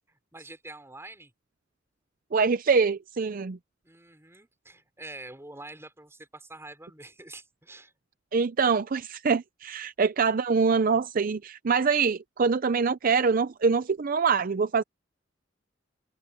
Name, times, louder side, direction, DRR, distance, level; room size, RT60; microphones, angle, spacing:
voice 1, 0.1-1.3 3.8-7.9, right 2 dB, 15° right, 5.4 m, -46 dB
voice 2, 2.3-3.6 8.3-14.8, right 5 dB, 50° right, 0.5 m, -24 dB
open air
head